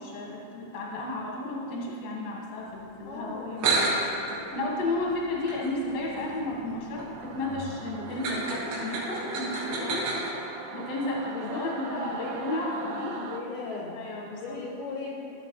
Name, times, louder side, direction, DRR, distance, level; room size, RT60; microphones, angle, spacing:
voice 1, 0.0-10.1 10.7-13.2 13.9-14.6, left 2 dB, 55° left, -3 dB, 2.2 m, -33 dB
voice 2, 3.0-3.6 9.8-10.0 11.3-12.6 12.9-14.0 14.4-15.3, left 3 dB, 70° left, -4 dB, 2.1 m, -37 dB
sound 1, 3.3-3.4 3.6-10.3, right 3 dB, 70° right, 3.4 m, -32 dB
Singing / Musical instrument, 7.2-13.4, right 5 dB, 85° right, 2.1 m, -41 dB
14.0 x 7.7 x 3.2 m, 2.9 s
omnidirectional pair, 5.0 m